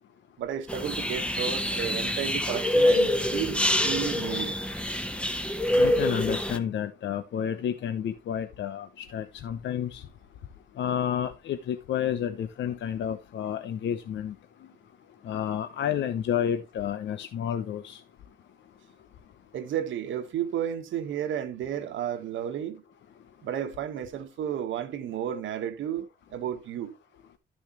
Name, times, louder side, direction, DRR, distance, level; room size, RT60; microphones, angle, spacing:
voice 1, 0.4-4.6 19.5-22.8 23.4-26.9, right 9 dB, 75° right, 1.5 m, -32 dB
sound 1, 0.7-6.6, left 1 dB, 5° left, 1.1 m, -26 dB
voice 2, 5.8-10.0 10.8-14.3 15.3-18.0, left 9 dB, 70° left, 0.9 m, -30 dB
12.0 x 6.3 x 3.1 m
cardioid pair, 90°, 20 cm